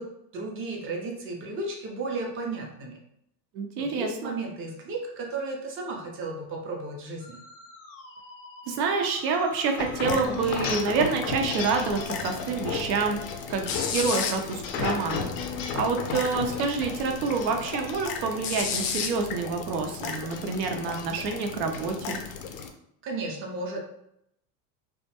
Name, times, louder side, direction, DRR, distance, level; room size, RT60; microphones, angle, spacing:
voice 1, 0.0-3.0 3.8-7.4 23.0-23.8, right 3 dB, 30° right, 0 dB, 0.4 m, -34 dB
voice 2, 3.5-4.3 8.7-13.2 13.5-15.2 15.7-22.2, right 4 dB, 85° right, 3 dB, 0.6 m, -27 dB
Musical instrument, 7.2-13.5, left 3 dB, 40° left, 0.5 m, -46 dB
sound 1, 9.8-22.7, left 6 dB, 85° left, 0.6 m, -33 dB
2.2 x 2.1 x 2.8 m, 0.75 s
supercardioid pair, 120°, 50 cm